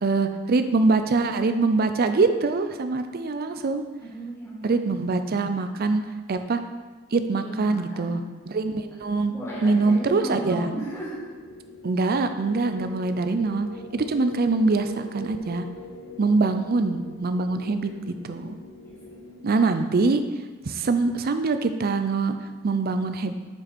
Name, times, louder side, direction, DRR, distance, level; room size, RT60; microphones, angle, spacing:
voice 1, 0.0-3.8 4.6-6.0 6.3-6.6 7.1-9.3 9.6-10.7 11.8-13.7 13.9-15.6 16.2-17.9 18.2-18.6 19.4-20.2 20.7-22.3 22.6-23.3, right 3 dB, 45° right, 9 dB, 0.5 m, -23 dB
voice 2, 4.0-4.8 7.4-8.2 9.3-11.2 18.8-18.9, right 1 dB, 15° left, -7 dB, 2.3 m, -35 dB
sound 1, 9.4-19.4, left 2 dB, 85° left, 1.0 m, -43 dB
7.0 x 5.5 x 4.3 m, 1.4 s
head